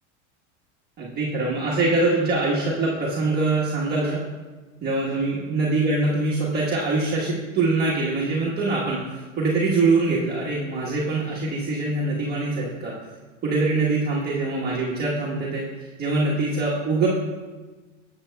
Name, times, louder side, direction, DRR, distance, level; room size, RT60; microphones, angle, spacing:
voice 1, 1.0-4.2 4.8-12.9 13.4-15.7 16.0-17.1, right 3 dB, 25° right, -6 dB, 1.3 m, -23 dB
11.0 x 7.8 x 2.3 m, 1.3 s
supercardioid pair, 125°, 36 cm